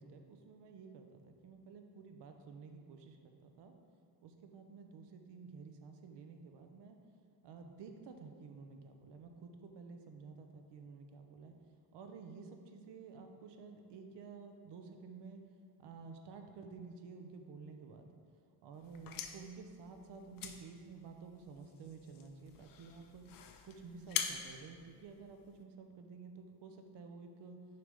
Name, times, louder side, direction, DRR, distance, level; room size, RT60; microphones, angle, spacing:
voice 1, 0.0-3.7 4.2-7.0 7.4-11.5 11.9-15.4 15.8-18.1 18.6-23.3 23.6-27.7, right 4 dB, 85° right, 5 dB, 0.7 m, -52 dB
sound 1, 18.8-25.6, left 8 dB, 55° left, 0.5 m, -45 dB
6.7 x 3.4 x 5.2 m, 2.1 s
cardioid pair, 165°, 41 cm